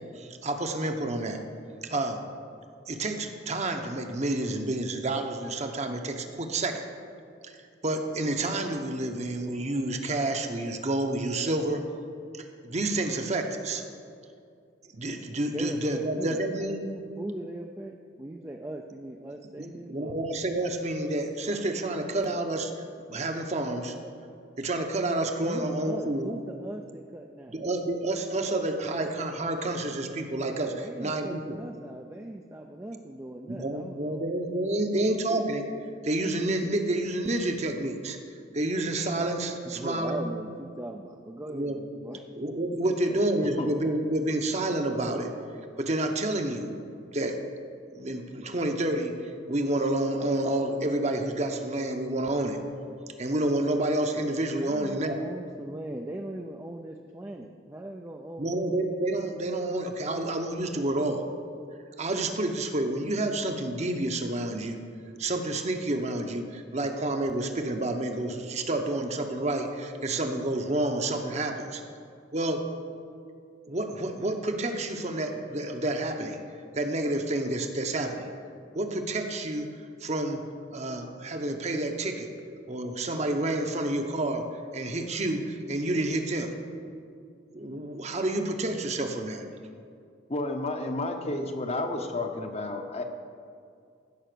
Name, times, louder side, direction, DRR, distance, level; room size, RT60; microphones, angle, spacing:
voice 1, 0.1-1.4 1.8-2.2 2.9-6.8 7.4-7.6 7.8-11.8 12.3-13.8 14.9-17.0 19.6-22.7 23.1-23.9 24.6-26.4 27.5-31.6 33.5-35.7 36.0-38.2 38.5-40.2 41.5-41.8 42.3-45.3 45.8-46.7 47.1-47.4 47.9-49.1 49.5-52.6 53.2-55.2 58.4-61.3 62.0-64.8 65.2-71.8 72.3-72.6 73.7-76.4 76.7-78.2 78.7-79.7 80.0-80.4 80.7-82.3 82.7-84.4 84.7-86.5 87.5-89.4, right 1 dB, 35° right, 5 dB, 0.9 m, -29 dB
voice 2, 15.5-16.4 17.2-20.2 25.4-27.6 30.8-34.3 34.9-35.0 39.6-42.2 42.8-43.2 54.6-58.6, right 1 dB, 15° right, 2 dB, 0.4 m, -39 dB
voice 3, 90.3-93.0, left 2 dB, 30° left, 5 dB, 0.8 m, -31 dB
15.0 x 5.6 x 6.8 m, 2.3 s
head